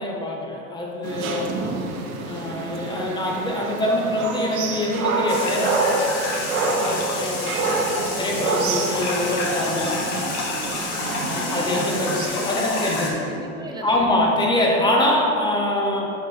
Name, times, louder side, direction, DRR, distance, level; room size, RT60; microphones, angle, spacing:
voice 1, 0.0-1.7 2.2-10.1 11.2-13.1 13.8-16.1, left 1 dB, 10° left, -1 dB, 1.0 m, -24 dB
sound 1, 1.0-12.3, right 4 dB, 85° right, 0.8 m, -27 dB
sound 2, 5.3-13.1, left 3 dB, 60° left, 1.4 m, -29 dB
voice 2, 10.5-14.1, right 2 dB, 10° right, 1 dB, 0.6 m, -37 dB
6.5 x 5.4 x 3.3 m, 2.9 s
hypercardioid pair, 105°, 40 cm